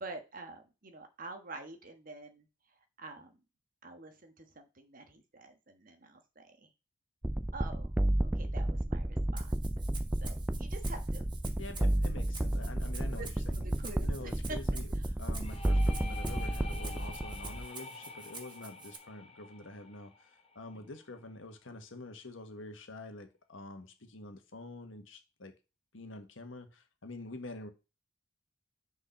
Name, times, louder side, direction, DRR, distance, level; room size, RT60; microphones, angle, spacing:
voice 1, 0.0-2.4 3.0-3.3 3.8-6.7 7.5-7.9 8.2-9.5 9.9-11.2 13.2-14.6 20.7-20.9, right 2 dB, 45° right, 1.4 m, -47 dB
sound 1, 7.2-17.7, right 1 dB, 10° right, 0.4 m, -32 dB
Rattle (instrument), 9.4-19.0, right 5 dB, 25° right, 1.2 m, -49 dB
voice 2, 11.6-13.7 14.0-14.9 15.2-25.5 25.9-27.7, left 2 dB, 80° left, 1.4 m, -47 dB
sound 2, 15.4-21.0, left 3 dB, 30° left, 0.9 m, -48 dB
6.4 x 4.9 x 5.7 m
head